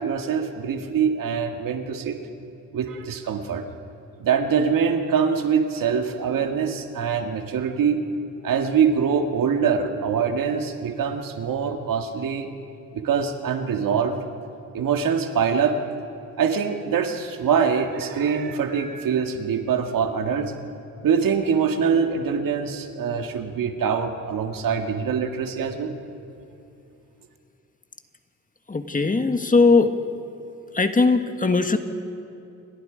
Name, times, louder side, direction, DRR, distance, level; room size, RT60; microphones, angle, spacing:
voice 1, 0.0-2.2 2.7-3.6 4.2-8.0 8.4-12.5 12.9-14.1 14.7-15.8 16.4-20.5 21.0-25.9, right 6 dB, 80° right, 5 dB, 1.9 m, -24 dB
voice 2, 28.7-30.0 30.7-31.8, left 3 dB, 25° left, 7 dB, 1.6 m, -19 dB
29.0 x 25.0 x 5.1 m, 2.6 s
cardioid pair, 85°, 33 cm